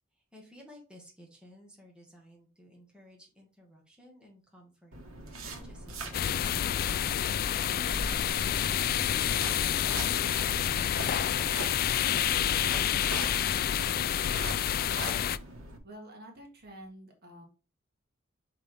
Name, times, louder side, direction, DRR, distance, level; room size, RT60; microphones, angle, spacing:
voice 1, 0.1-5.0 5.4-6.7, equal, 5° right, -1 dB, 1.8 m, -56 dB
sound 1, 4.9-15.8, right 1 dB, 90° right, 1.5 m, -42 dB
sound 2, 6.1-15.4, left 10 dB, 45° left, 0.3 m, -28 dB
sound 3, 15.7-15.8, equal, 25° left, 2.7 m, -54 dB
voice 2, 15.8-17.4, right 1 dB, 50° right, 2 dB, 1.8 m, -48 dB
5.7 x 5.0 x 3.5 m, 0.34 s
head